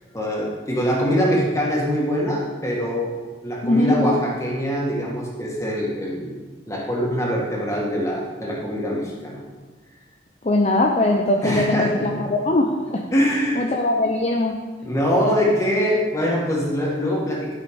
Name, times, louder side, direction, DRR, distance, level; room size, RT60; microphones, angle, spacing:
voice 1, 0.1-6.3 6.7-9.4 11.4-12.2 13.1-13.7 14.8-17.6, equal, 15° left, -3 dB, 1.8 m, -23 dB
voice 2, 3.6-4.0 10.4-13.0 13.6-14.6, left 2 dB, 35° left, 1 dB, 0.6 m, -21 dB
12.0 x 5.6 x 5.2 m, 1.4 s
head